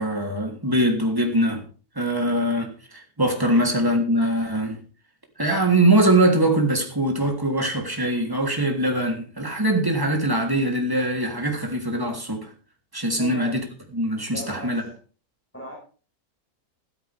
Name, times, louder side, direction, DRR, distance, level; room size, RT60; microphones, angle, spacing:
voice 1, 0.0-1.6 1.9-4.8 5.4-12.5 12.9-13.7 13.9-14.8, right 1 dB, 15° right, 3.3 m, -22 dB
voice 2, 13.2-13.6 14.3-14.9 15.5-15.7, equal, 10° left, 5.7 m, -36 dB
16.0 x 13.5 x 3.6 m
omnidirectional pair, 1.6 m